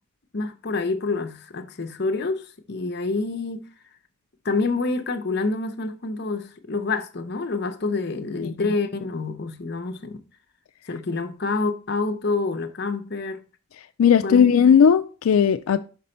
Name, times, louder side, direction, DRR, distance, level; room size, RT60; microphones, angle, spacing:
voice 1, 0.3-3.7 4.4-10.2 10.9-13.4 14.2-14.4, left 3 dB, 50° left, 0.7 m, -27 dB
voice 2, 14.0-15.8, left 7 dB, 85° left, 0.4 m, -17 dB
5.9 x 5.5 x 4.2 m
head